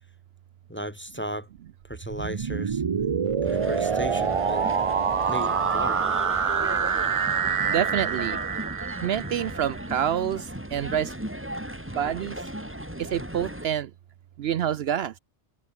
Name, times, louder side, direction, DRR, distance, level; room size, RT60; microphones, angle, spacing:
voice 1, 0.7-1.5 1.8-2.8 3.4-4.7 5.3-6.0, equal, 10° left, 0.9 m, -35 dB
sound 1, 1.9-9.8, right 6 dB, 40° right, 0.5 m, -26 dB
sound 2, 3.4-13.7, equal, 10° right, 3.9 m, -36 dB
voice 2, 7.7-8.4 9.0-11.1 12.0-12.4 13.0-13.9 14.4-15.1, right 9 dB, 65° right, 0.8 m, -27 dB
omnidirectional pair, 1.2 m